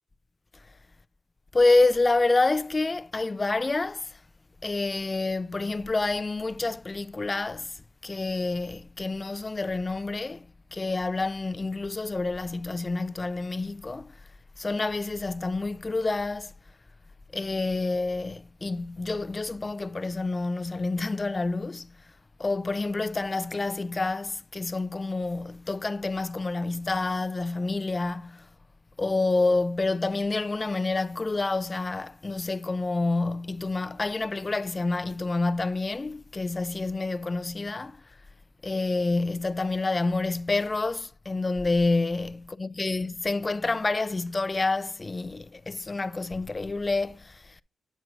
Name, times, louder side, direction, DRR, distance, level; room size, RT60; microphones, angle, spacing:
voice 1, 1.5-4.2 4.6-10.5 10.7-14.2 14.6-16.5 17.3-22.0 22.4-28.5 29.0-38.0 38.6-47.6, left 3 dB, 35° left, 0.4 m, -28 dB
9.1 x 7.6 x 2.5 m
supercardioid pair, 50°, 0 cm